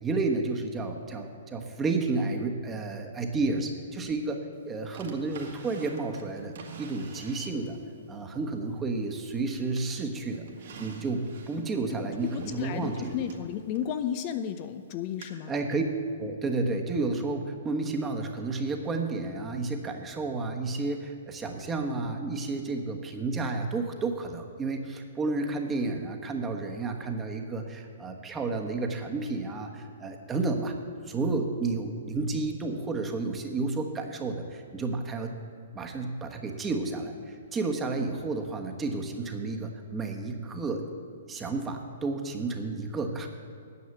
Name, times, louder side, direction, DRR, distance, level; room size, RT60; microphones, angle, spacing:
voice 1, 0.0-4.4 4.6-6.5 6.8-7.8 8.1-10.4 10.8-13.1 15.5-15.9 16.2-30.7 31.1-35.3 35.7-40.8 41.3-43.3, right 3 dB, 15° right, 3 dB, 1.3 m, -31 dB
Drawer open or close, 4.9-7.9 8.3-9.4 9.8-14.5 15.2-15.3, right 4 dB, 60° right, 1.9 m, -48 dB
voice 2, 11.9-15.5, left 9 dB, 40° left, 10 dB, 0.6 m, -33 dB
9.7 x 7.1 x 8.0 m, 2.3 s
hypercardioid pair, 125°, 0 cm